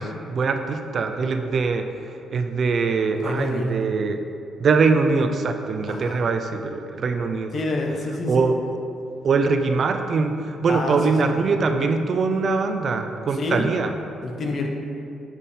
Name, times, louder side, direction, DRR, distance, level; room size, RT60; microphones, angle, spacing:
voice 1, 0.0-4.2 4.6-7.5 8.3-8.6 9.2-13.9, right 4 dB, 50° right, 7 dB, 0.4 m, -22 dB
voice 2, 3.2-3.8 5.9-6.3 7.5-8.5 10.7-11.0 13.3-13.7 14.2-14.7, left 2 dB, 50° left, 1 dB, 0.8 m, -27 dB
7.3 x 3.6 x 4.2 m, 2.5 s
cardioid pair, 90°, 0 cm